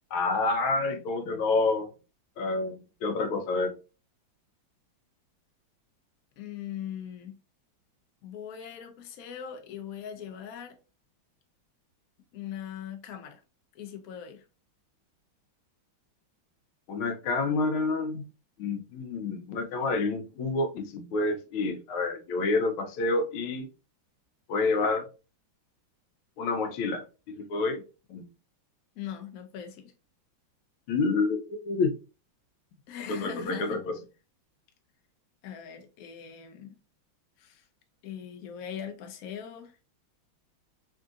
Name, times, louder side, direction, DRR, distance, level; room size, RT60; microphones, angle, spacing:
voice 1, 0.1-1.9 2.4-3.7 16.9-18.2 18.6-23.7 24.5-25.0 26.4-27.8 28.1-28.3 30.9-32.0 33.1-33.8, left 3 dB, 90° left, 1.5 m, -28 dB
voice 2, 6.4-7.4 8.2-10.8 12.3-13.4 13.7-14.4 28.9-29.9 32.9-33.8 35.4-36.8 37.4-37.7 38.0-39.8, left 9 dB, 70° left, 0.8 m, -40 dB
3.6 x 2.6 x 2.4 m
omnidirectional pair, 2.2 m